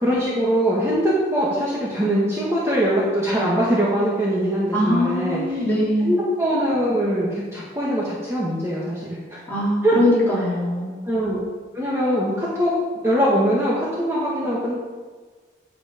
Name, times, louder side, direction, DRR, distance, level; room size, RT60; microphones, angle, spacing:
voice 1, 0.0-5.6 6.0-9.4 9.8-10.0 11.0-11.4 11.7-12.7 13.0-14.7, equal, 15° right, -7 dB, 1.7 m, -22 dB
voice 2, 4.7-6.1 9.5-11.0, left 1 dB, 10° left, -8 dB, 3.5 m, -22 dB
9.7 x 8.2 x 5.1 m, 1.4 s
head